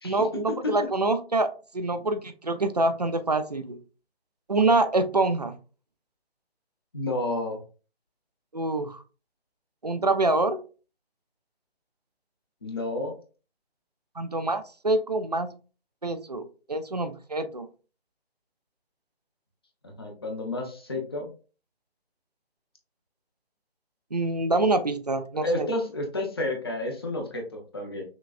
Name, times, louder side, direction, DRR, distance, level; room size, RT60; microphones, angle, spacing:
voice 1, 0.0-3.8 4.5-5.6 8.5-9.0 9.8-10.6 14.2-15.5 16.0-17.7 24.1-25.7, right 2 dB, 40° right, 10 dB, 0.4 m, -26 dB
voice 2, 6.9-7.6 12.6-13.1 19.8-21.3 25.3-28.0, left 1 dB, 25° left, 2 dB, 0.7 m, -31 dB
5.9 x 2.2 x 2.4 m, 0.36 s
figure-of-eight pair, 155°, 32 cm